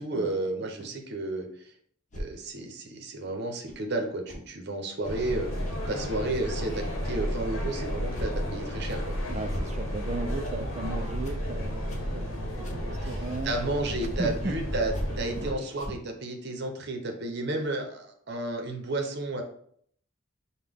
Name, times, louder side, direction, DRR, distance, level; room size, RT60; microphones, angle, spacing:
voice 1, 0.0-1.5 2.1-5.5 5.9-9.0 13.0-13.2 13.4-19.4, right 2 dB, 50° right, 4 dB, 0.7 m, -32 dB
sound 1, 2.1-2.3 3.7-3.8 4.3-4.4 5.0-5.2 5.7-5.8 6.2-6.4 7.1-7.3 7.5-7.7 8.1-8.3 8.9-9.0 9.5-9.7 10.4-10.5 11.2-11.4 11.9-12.0 12.6-12.8 13.3-13.4 14.2-14.3 14.9-15.1 15.8-16.0, equal, 35° left, 0.7 m, -38 dB
sound 2, 5.1-15.5, equal, 65° left, 1.0 m, -32 dB
voice 2, 9.2-14.5, right 2 dB, 30° right, 8 dB, 0.3 m, -36 dB
5.5 x 2.2 x 3.5 m, 0.62 s
head